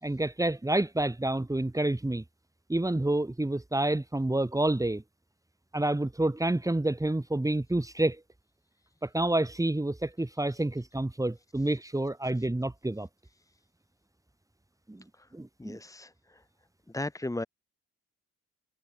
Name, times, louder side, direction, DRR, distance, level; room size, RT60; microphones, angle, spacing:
voice 1, 0.0-2.2 2.7-5.0 5.7-8.2 9.0-13.1 14.9-15.0 15.3-15.8, right 1 dB, 10° right, 5.9 m, -28 dB
voice 2, 15.6-16.4 16.9-17.4, left 2 dB, 10° left, 4.1 m, -36 dB
cardioid pair, 90°, 30 cm